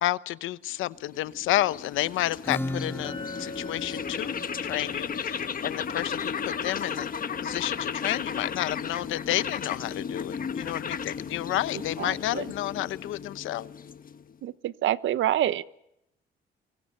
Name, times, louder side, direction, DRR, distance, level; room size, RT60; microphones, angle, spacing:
voice 1, 0.0-7.1 7.4-13.7, left 15 dB, 90° left, 16 dB, 0.9 m, -30 dB
sound 1, 0.9-14.3, left 6 dB, 45° left, 1.5 m, -35 dB
Acoustic guitar / Strum, 2.4-7.8, left 1 dB, 10° left, 3.9 m, -39 dB
Chink clink, 3.0-7.3, left 1 dB, 25° left, 2.7 m, -45 dB
voice 2, 12.0-12.4 14.4-15.6, right 12 dB, 75° right, 16 dB, 1.1 m, -27 dB
29.5 x 24.5 x 6.7 m, 0.81 s
cardioid pair, 90°, 20 cm